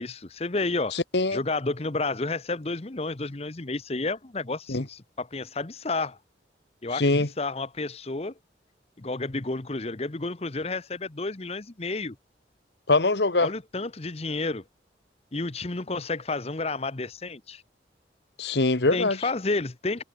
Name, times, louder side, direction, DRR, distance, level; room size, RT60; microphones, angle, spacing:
voice 1, 0.0-0.9 1.3-6.2 6.8-8.3 9.0-12.1 13.4-14.6 15.3-17.6 18.9-20.0, left 3 dB, 35° left, 0.9 m, -31 dB
voice 2, 0.9-1.4 4.7-4.8 6.9-7.3 12.9-13.5 18.4-19.2, left 2 dB, 70° left, 1.4 m, -23 dB
head